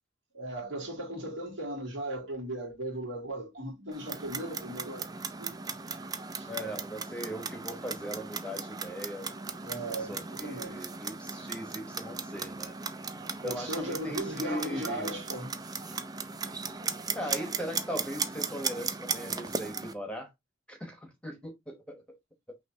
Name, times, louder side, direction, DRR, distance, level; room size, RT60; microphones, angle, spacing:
voice 1, 0.3-5.1 5.4-5.6 6.3-6.5 9.6-10.9 13.3-16.0, right 1 dB, 70° right, 2.4 m, -37 dB
Clock, 3.9-19.9, right 5 dB, 20° right, 0.4 m, -37 dB
voice 2, 6.5-9.3 10.1-12.7 13.4-15.2 17.1-20.3 20.7-22.2 22.5-22.6, equal, 5° left, 1.0 m, -39 dB
5.9 x 2.9 x 2.8 m
head